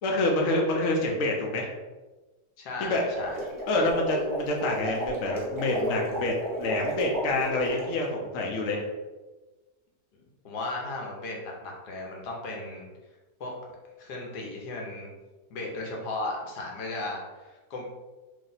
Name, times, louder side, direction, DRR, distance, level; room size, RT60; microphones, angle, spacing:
voice 1, 0.0-1.7 2.8-3.2 3.7-8.9, left 2 dB, 60° left, 0 dB, 0.9 m, -27 dB
voice 2, 2.6-3.4 10.4-12.9 13.4-13.5 14.0-15.1 15.5-17.8, left 2 dB, 75° left, -1 dB, 1.3 m, -36 dB
sound 1, 3.0-7.9, right 1 dB, 20° right, 0.5 m, -33 dB
3.0 x 2.7 x 3.9 m, 1.2 s
omnidirectional pair, 1.8 m